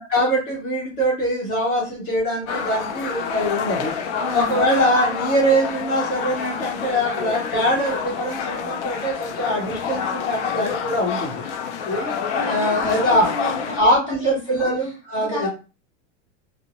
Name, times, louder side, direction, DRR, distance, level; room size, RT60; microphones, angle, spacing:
voice 1, 0.0-3.9 4.3-11.4 11.8-12.1 12.4-13.3 13.7-15.5, equal, 40° left, -6 dB, 1.1 m, -22 dB
sound 1, 2.5-13.8, left 6 dB, 65° left, 0.5 m, -28 dB
voice 2, 4.1-4.6 12.3-13.8 14.2-14.7 15.1-15.5, left 1 dB, 15° left, -8 dB, 1.5 m, -31 dB
2.6 x 2.0 x 2.9 m, 0.32 s
supercardioid pair, 170°, 37 cm